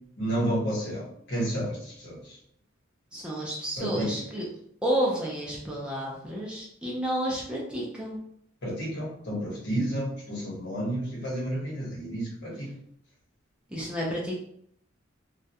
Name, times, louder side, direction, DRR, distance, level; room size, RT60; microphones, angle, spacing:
voice 1, 0.2-2.4 3.8-4.2 8.6-12.7, right 1 dB, 55° left, -4 dB, 1.0 m, -31 dB
voice 2, 3.1-4.5 4.8-8.2 13.7-14.4, right 1 dB, 5° right, -5 dB, 0.4 m, -30 dB
2.3 x 2.1 x 2.7 m, 0.69 s
head